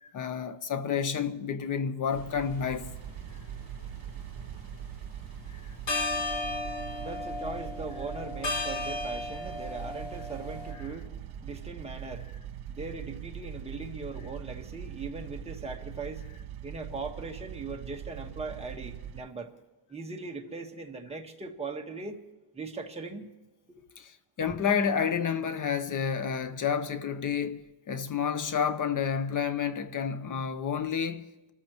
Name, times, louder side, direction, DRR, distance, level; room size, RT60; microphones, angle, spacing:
voice 1, 0.0-2.9 5.5-5.8 24.0-31.5, left 7 dB, 40° left, 0.9 m, -30 dB
sound 1, 2.1-2.3 3.0-4.0 5.4-5.5 5.9-10.7, left 2 dB, 60° left, 5.9 m, -34 dB
sound 2, 2.1-19.2, right 9 dB, 75° right, 1.5 m, -42 dB
voice 2, 5.9-16.3 16.6-19.5 19.9-22.2 22.5-23.3, right 3 dB, 15° right, 1.5 m, -40 dB
25.5 x 14.0 x 3.1 m
cardioid pair, 150°, 47 cm